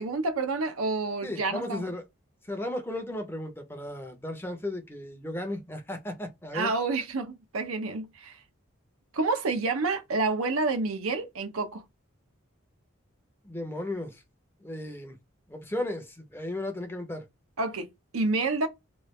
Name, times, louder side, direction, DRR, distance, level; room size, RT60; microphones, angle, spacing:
voice 1, 0.0-1.9 6.5-8.4 9.1-11.8 17.6-17.9 18.1-18.7, right 3 dB, 85° right, 0.7 m, -29 dB
voice 2, 1.2-2.0 2.5-6.7 13.4-14.2 14.6-15.2 15.5-17.2, left 1 dB, 10° left, 0.6 m, -35 dB
3.1 x 2.3 x 3.0 m
head